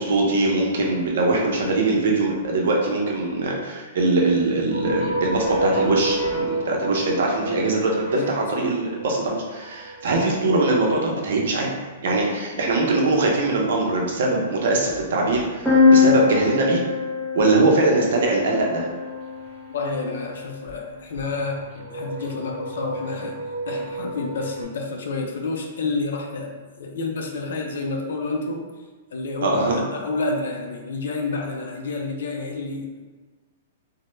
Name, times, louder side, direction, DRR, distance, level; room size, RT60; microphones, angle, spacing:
voice 1, 0.0-11.7 12.0-16.8 17.3-18.9 29.4-29.8, right 2 dB, 60° right, -1 dB, 0.5 m, -22 dB
sound 1, 4.7-11.6 14.7-16.2 19.0-19.6 19.9-20.2 20.7-20.8 21.1-24.6, right 1 dB, 35° left, 1.0 m, -32 dB
voice 2, 8.1-8.7 19.7-23.3 23.7-28.6 29.1-33.0, left 3 dB, 70° left, 1 dB, 0.4 m, -29 dB
sound 2, 15.7-19.4, left 4 dB, ahead, 0.4 m, -21 dB
2.0 x 2.0 x 3.0 m, 1.4 s
hypercardioid pair, 175°, 0 cm